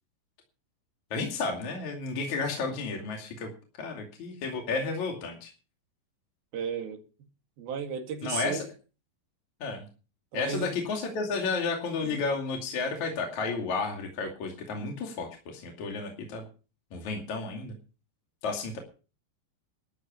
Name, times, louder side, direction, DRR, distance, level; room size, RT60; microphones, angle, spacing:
voice 1, 1.1-3.5 3.8-5.5 8.2-8.6 9.6-9.8 10.3-16.4 16.9-17.7 18.4-18.8, left 4 dB, 45° left, 3.4 m, -32 dB
voice 2, 6.5-7.0 7.6-8.7 10.3-10.7 12.0-12.3, right 6 dB, 60° right, 4.0 m, -34 dB
13.0 x 9.8 x 7.1 m
omnidirectional pair, 5.1 m